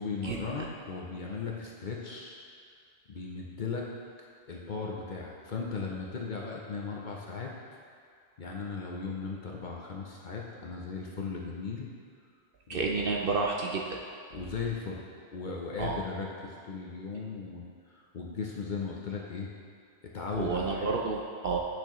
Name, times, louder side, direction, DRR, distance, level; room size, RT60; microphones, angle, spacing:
voice 1, 0.0-2.4 3.1-3.9 4.5-7.5 8.4-11.9 12.7-13.1 14.3-15.0 15.3-19.5 20.1-20.9, left 5 dB, 50° left, -2 dB, 0.7 m, -37 dB
voice 2, 12.7-13.8 15.8-16.0 20.3-21.6, right 4 dB, 60° right, -1 dB, 0.7 m, -30 dB
8.8 x 6.2 x 3.0 m, 2.2 s
omnidirectional pair, 1.3 m